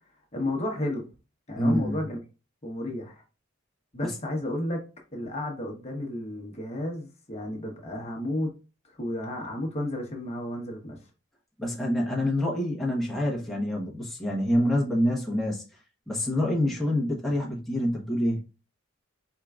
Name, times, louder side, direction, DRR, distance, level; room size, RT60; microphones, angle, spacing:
voice 1, 0.3-1.0 1.5-2.2 2.6-3.2 3.9-4.8 5.1-8.5 8.9-11.0, left 1 dB, 30° left, 1.0 m, -32 dB
voice 2, 1.6-2.0 4.0-4.1 11.6-15.6 16.1-18.4, left 1 dB, ahead, 0.9 m, -26 dB
4.5 x 3.7 x 2.3 m
head